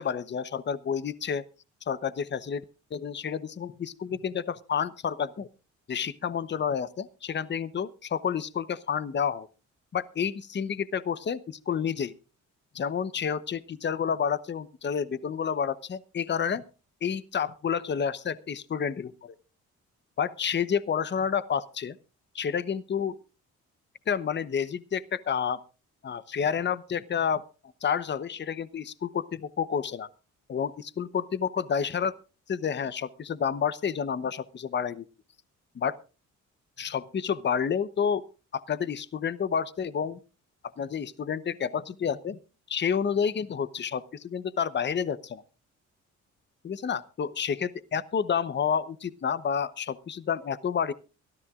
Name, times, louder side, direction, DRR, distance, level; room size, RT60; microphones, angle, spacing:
voice 1, 0.0-1.4 1.9-2.6 2.9-5.5 5.9-9.5 9.9-12.1 12.7-16.6 17.0-19.3 20.2-22.0 22.3-23.2 24.1-25.6 26.0-27.4 27.8-30.1 30.5-32.2 32.5-35.0 35.7-36.0 36.8-38.2 38.5-40.2 40.8-42.4 42.7-45.4 46.6-50.9, left 7 dB, 35° left, 16 dB, 0.9 m, -29 dB
23.5 x 13.0 x 2.4 m, 0.33 s
cardioid pair, 90°, 30 cm